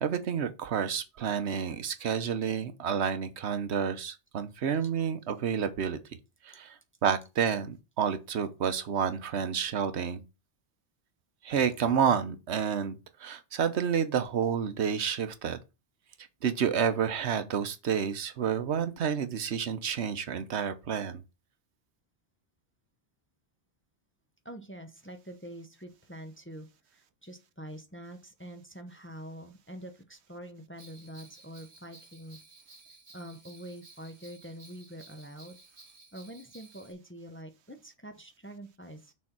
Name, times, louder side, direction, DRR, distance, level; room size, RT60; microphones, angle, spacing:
voice 1, 0.0-6.0 6.4-10.2 11.4-15.6 16.4-21.2, right 7 dB, 75° right, 1.1 m, -30 dB
voice 2, 24.4-32.4 32.9-35.6 36.1-39.1, equal, 10° left, 0.7 m, -45 dB
Bell, 30.8-36.9, right 3 dB, 30° right, 1.2 m, -55 dB
6.4 x 4.0 x 5.9 m
omnidirectional pair, 1.2 m